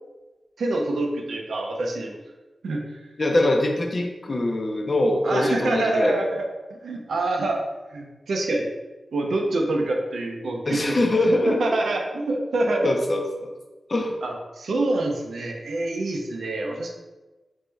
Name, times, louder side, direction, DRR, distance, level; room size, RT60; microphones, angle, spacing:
voice 1, 0.6-2.2 2.6-2.9 5.2-7.7 7.9-8.7 9.1-11.2 11.6-12.9 14.2-16.9, right 2 dB, 90° right, 1 dB, 0.7 m, -26 dB
voice 2, 3.2-6.2 10.7-11.8 12.8-13.5 13.9-14.2, left 1 dB, 40° left, 2 dB, 0.8 m, -23 dB
4.1 x 3.5 x 3.3 m, 1.2 s
wide cardioid pair, 80°, 0 cm